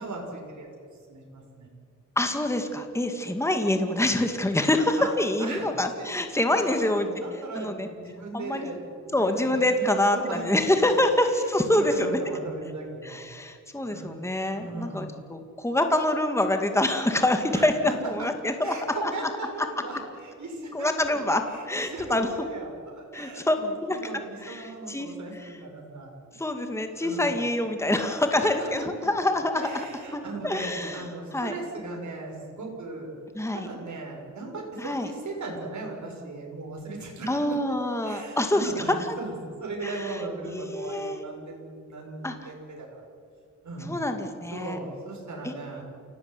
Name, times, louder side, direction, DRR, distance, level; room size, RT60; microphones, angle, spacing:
voice 1, 0.0-1.7 5.0-5.1 5.4-5.7 6.0-6.1 6.5-9.8 10.1-10.4 10.7-13.3 13.9-14.2 14.5-15.1 17.5-17.9 18.2-18.3 18.6-26.4 27.0-27.3 28.4-29.1 29.5-33.1 33.5-37.8 38.0-43.0 43.6-44.0 44.5-45.8, right 3 dB, 65° right, 0 dB, 6.8 m, -38 dB
voice 2, 2.2-7.1 7.6-7.9 8.3-8.7 9.1-12.4 13.0-18.7 19.0-19.1 20.7-21.4 21.7-22.3 23.1-24.0 24.4-25.1 25.4-25.5 26.4-29.6 30.1-31.0 31.3-31.5 33.4-33.7 34.8-35.1 37.3-38.7 39.8-40.2 40.4-41.2 42.2-42.4 43.9-44.8 45.4-45.5, left 1 dB, 10° left, 6 dB, 2.1 m, -26 dB
28.5 x 18.5 x 9.8 m, 2.2 s
wide cardioid pair, 120°, 31 cm